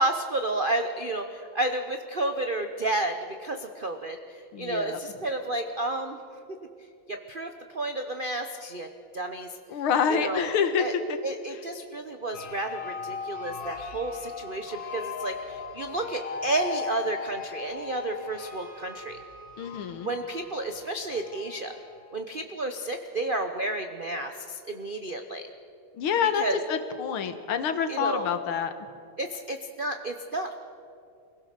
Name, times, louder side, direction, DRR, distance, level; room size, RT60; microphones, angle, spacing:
voice 1, 0.0-6.2 6.5-6.6 7.1-8.9 9.1-9.5 10.1-10.9 11.2-19.2 20.0-21.7 22.1-25.4 26.3-26.6 27.9-28.3 29.2-30.5, right 2 dB, 85° right, 6 dB, 0.4 m, -31 dB
voice 2, 4.5-5.0 9.7-11.2 19.6-20.1 26.0-28.7, left 7 dB, 80° left, 8 dB, 2.0 m, -27 dB
sound 1, 12.3-22.1, left 5 dB, 60° left, 2.4 m, -38 dB
24.5 x 16.5 x 6.6 m, 2.5 s
omnidirectional pair, 2.3 m